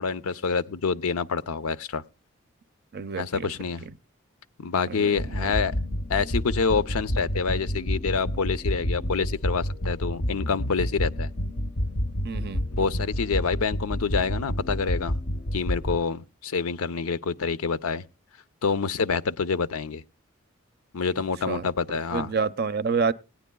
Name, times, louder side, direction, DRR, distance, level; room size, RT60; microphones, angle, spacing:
voice 1, 0.0-2.0 3.2-3.8 4.6-5.7 6.1-11.3 12.7-15.2 15.5-18.0 18.6-20.0 20.9-22.3, left 5 dB, 80° left, 0.6 m, -27 dB
voice 2, 2.9-3.5 3.8-3.9 4.9-5.6 12.2-12.7 21.5-23.1, right 5 dB, 45° right, 0.5 m, -29 dB
sound 1, 5.2-16.0, equal, 40° left, 0.6 m, -29 dB
19.0 x 9.9 x 2.2 m
head